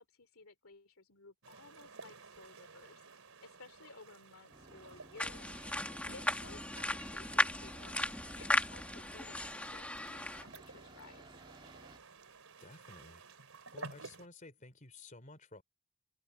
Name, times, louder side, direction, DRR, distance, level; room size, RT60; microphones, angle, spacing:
voice 1, 0.0-3.0 3.4-5.5 6.1-11.2, left 3 dB, 75° left, 2.7 m, -57 dB
sound 1, 1.4-14.3, right 4 dB, 75° right, 3.5 m, -54 dB
sound 2, 4.5-12.0, right 2 dB, 20° right, 1.9 m, -58 dB
sound 3, 5.2-10.4, left 1 dB, 5° left, 1.4 m, -36 dB
voice 2, 12.6-13.2 13.7-15.6, left 2 dB, 35° left, 3.5 m, -53 dB
head